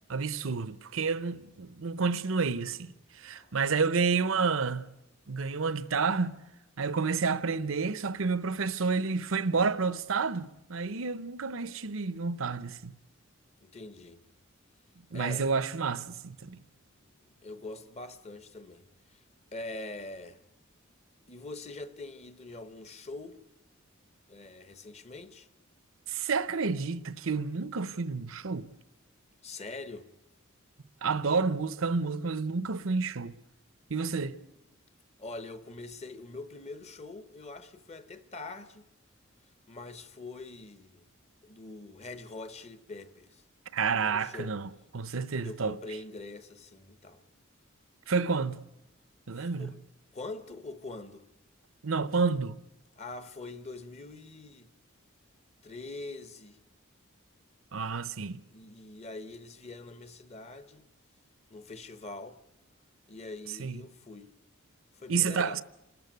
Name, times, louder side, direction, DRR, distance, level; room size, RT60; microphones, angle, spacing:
voice 1, 0.1-4.8 5.3-6.4 6.8-12.9 15.1-16.6 26.1-28.7 31.0-33.4 33.9-34.4 43.7-45.8 48.1-48.6 49.3-49.7 51.8-52.6 57.7-58.4 63.6-63.8 65.1-65.6, right 4 dB, 70° right, 0.8 m, -30 dB
voice 2, 13.6-14.2 15.1-15.5 16.4-16.5 17.0-19.2 19.5-20.4 21.3-23.4 24.3-25.5 29.4-30.1 35.2-38.9 39.7-41.1 41.4-43.4 43.9-44.6 45.4-47.2 49.3-49.8 50.1-51.3 53.0-54.7 55.6-56.6 58.5-60.8 61.5-62.4 63.1-64.3 65.0-65.6, left 2 dB, 30° left, 1.0 m, -44 dB
27.5 x 14.0 x 9.3 m
head